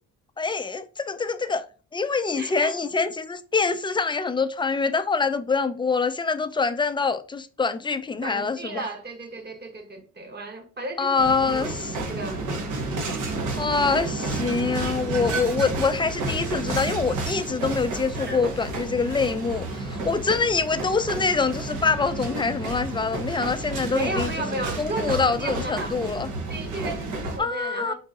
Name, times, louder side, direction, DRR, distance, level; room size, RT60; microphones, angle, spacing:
voice 1, 0.4-1.6 1.9-8.8 11.0-12.0 13.6-24.3 24.8-26.3 27.4-27.9, left 4 dB, 15° left, 0.4 m, -25 dB
voice 2, 2.3-2.8 8.2-12.5 18.1-18.4 23.9-25.9 26.5-27.9, right 2 dB, 35° right, 1.1 m, -34 dB
sound 1, 11.2-27.4, right 2 dB, 85° right, 1.0 m, -31 dB
3.9 x 2.6 x 3.6 m
cardioid pair, 90°, 30 cm